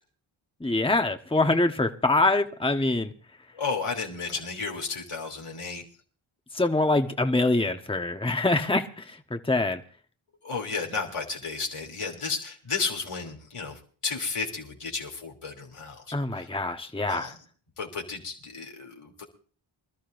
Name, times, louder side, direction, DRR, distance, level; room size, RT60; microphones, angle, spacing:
voice 1, 0.6-3.1 6.5-9.8 16.1-17.3, left 2 dB, 10° left, 6 dB, 1.2 m, -25 dB
voice 2, 3.5-5.8 10.4-16.5 17.1-17.3 17.8-19.2, left 4 dB, 85° left, 1 dB, 3.1 m, -33 dB
25.5 x 12.5 x 2.6 m, 0.42 s
wide cardioid pair, 55°, 50 cm